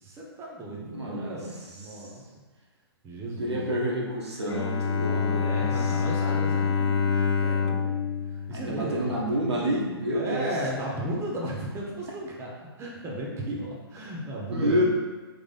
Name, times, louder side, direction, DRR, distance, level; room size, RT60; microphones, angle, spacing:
voice 1, 0.0-2.4 3.0-3.9 4.9-9.3 10.1-12.5 12.8-14.8, right 1 dB, 20° right, -3 dB, 0.9 m, -35 dB
voice 2, 0.7-2.1 3.4-6.3 8.5-10.5 14.5-14.8, equal, 90° right, -4 dB, 1.1 m, -29 dB
Bowed string instrument, 4.5-9.5, left 6 dB, 80° left, 0.4 m, -27 dB
3.7 x 2.9 x 4.1 m, 1.3 s
hypercardioid pair, 125°, 14 cm